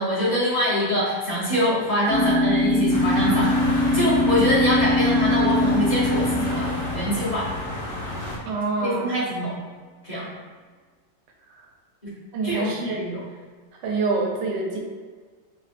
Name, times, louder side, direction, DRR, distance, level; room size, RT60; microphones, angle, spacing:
voice 1, 0.0-7.5 8.8-9.5 10.0-10.3 12.0-12.1 12.4-13.2, equal, 30° left, -10 dB, 1.0 m, -24 dB
sound 1, 2.1-7.9, left 1 dB, ahead, 0.8 m, -22 dB
sound 2, 2.9-8.4, left 1 dB, 65° left, 1.4 m, -31 dB
voice 2, 8.4-9.1 12.3-13.0 13.8-14.8, right 3 dB, 75° right, 0 dB, 1.2 m, -26 dB
3.3 x 2.4 x 4.1 m, 1.5 s
omnidirectional pair, 2.0 m